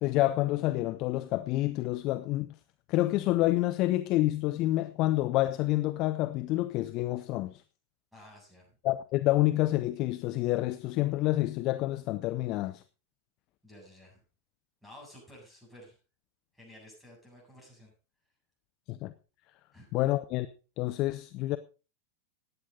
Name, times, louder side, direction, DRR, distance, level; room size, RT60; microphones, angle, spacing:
voice 1, 0.0-2.5 2.9-7.6 8.8-12.8 18.9-19.1 19.9-20.5 20.8-21.6, left 17 dB, 40° left, 0.7 m, -28 dB
voice 2, 8.1-8.8 13.6-14.2 14.8-16.0 16.5-17.9 19.7-19.9, left 1 dB, ahead, 7.8 m, -53 dB
14.5 x 9.8 x 4.0 m
figure-of-eight pair, 90°, 0 cm